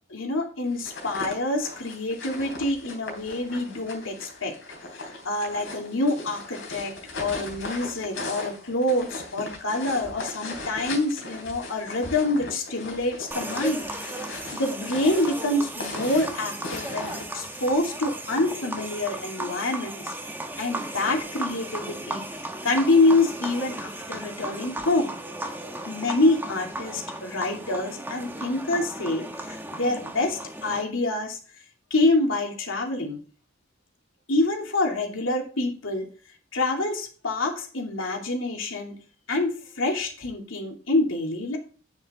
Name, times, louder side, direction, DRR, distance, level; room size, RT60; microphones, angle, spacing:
voice 1, 0.1-4.5 5.0-13.8 14.2-20.1 20.6-22.2 22.6-25.1 25.8-29.3 29.7-31.4 31.9-33.2 34.3-36.1 36.5-38.9 39.3-41.6, left 2 dB, 85° left, 1 dB, 2.7 m, -26 dB
sound 1, 0.7-17.8, left 2 dB, 65° left, 3.4 m, -38 dB
sound 2, 13.3-30.8, right 1 dB, 10° right, 1.1 m, -36 dB
9.2 x 7.3 x 3.7 m, 0.39 s
head